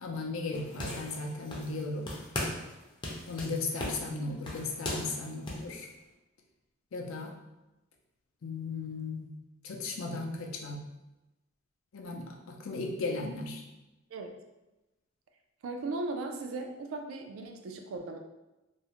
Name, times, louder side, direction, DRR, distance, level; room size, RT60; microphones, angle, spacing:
voice 1, 0.0-2.1 3.3-5.9 6.9-7.3 8.4-9.3 9.6-10.8 11.9-13.6, left 3 dB, 90° left, 1 dB, 0.4 m, -36 dB
sound 1, 0.5-1.8 2.1-2.7 3.0-5.7, left 1 dB, 25° left, 0.4 m, -38 dB
voice 2, 15.6-18.2, right 3 dB, 85° right, 4 dB, 0.3 m, -37 dB
2.4 x 2.0 x 2.8 m, 1.0 s
head